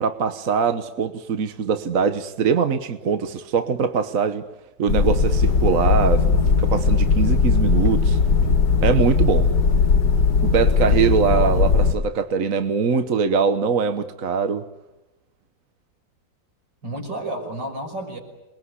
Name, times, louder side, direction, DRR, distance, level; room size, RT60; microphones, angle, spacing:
voice 1, 0.0-4.4 4.8-6.2 6.6-8.2 8.8-9.5 10.4-14.6, right 6 dB, 50° right, 1.4 m, -22 dB
sound 1, 4.9-11.9, left 4 dB, 80° left, 2.2 m, -18 dB
voice 2, 11.3-11.7 16.8-18.2, right 1 dB, 80° right, 6.9 m, -31 dB
28.0 x 21.5 x 9.8 m
omnidirectional pair, 1.9 m